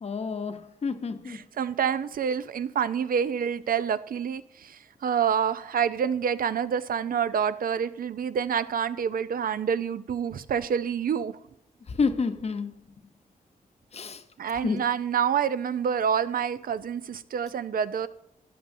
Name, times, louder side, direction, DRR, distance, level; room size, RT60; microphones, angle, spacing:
voice 1, 0.0-1.4 11.9-12.8 13.9-14.2 14.6-14.8, left 4 dB, 45° left, 0.8 m, -29 dB
voice 2, 1.3-11.3 14.4-18.1, right 7 dB, 75° right, 0.6 m, -27 dB
13.0 x 10.0 x 2.7 m
wide cardioid pair, 135°, 15 cm